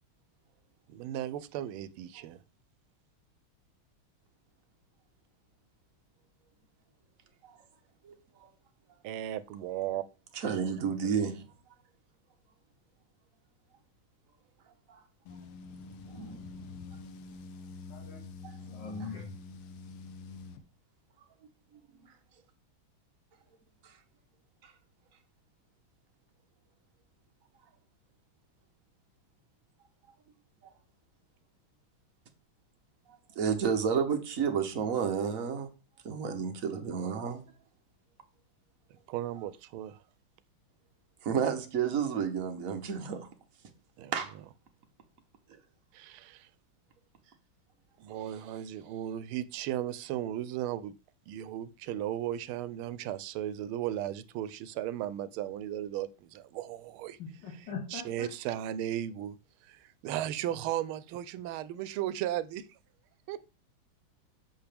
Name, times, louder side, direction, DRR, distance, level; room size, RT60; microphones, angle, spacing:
voice 1, 0.9-2.4 9.0-10.0 39.1-40.0 44.0-44.1 45.9-46.5 48.0-50.9 51.3-57.2 57.9-59.4 59.7-62.7 63.3-63.4, right 12 dB, 85° right, 1.4 m, -36 dB
voice 2, 10.3-11.4 14.9-15.0 16.1-16.4 22.0-22.1 24.6-24.7 33.4-35.7 36.0-37.4 41.2-43.3 44.1-44.3, right 7 dB, 50° right, 1.3 m, -31 dB
sound 1, 15.3-20.6, left 3 dB, 90° left, 1.7 m, -46 dB
voice 3, 17.9-18.2 18.7-19.4 57.2-58.3, left 5 dB, 60° left, 1.7 m, -41 dB
8.0 x 6.1 x 3.4 m
omnidirectional pair, 2.3 m